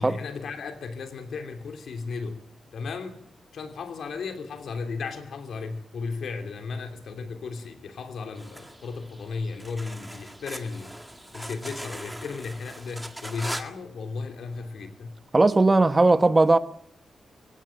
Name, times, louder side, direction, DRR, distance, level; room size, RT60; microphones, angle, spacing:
voice 1, 0.0-2.4 2.7-3.2 3.5-10.9 11.3-15.2, left 4 dB, 80° left, 3.0 m, -35 dB
sound 1, 8.3-13.7, right 1 dB, 5° right, 1.8 m, -40 dB
voice 2, 15.3-16.6, right 2 dB, 25° right, 1.2 m, -18 dB
23.5 x 17.5 x 9.0 m
cardioid pair, 100°, 0 cm